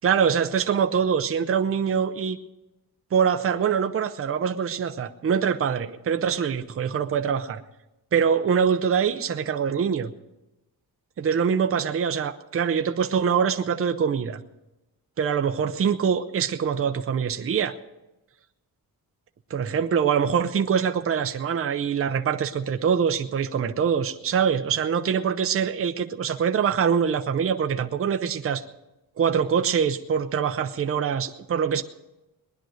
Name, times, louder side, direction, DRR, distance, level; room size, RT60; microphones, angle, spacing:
voice 1, 0.0-2.4 3.1-7.6 8.1-10.1 11.2-14.4 15.2-17.7 19.5-28.6 29.2-31.8, right 7 dB, 35° right, 7 dB, 0.7 m, -24 dB
20.0 x 10.5 x 6.4 m, 0.97 s
wide cardioid pair, 170°, 37 cm